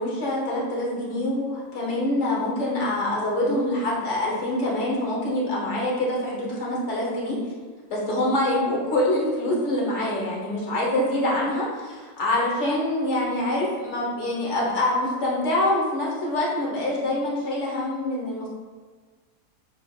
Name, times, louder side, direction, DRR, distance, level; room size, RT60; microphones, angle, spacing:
voice 1, 0.0-7.4 7.9-18.5, left 1 dB, 50° left, -4 dB, 1.2 m, -25 dB
6.5 x 3.4 x 2.3 m, 1.4 s
omnidirectional pair, 1.7 m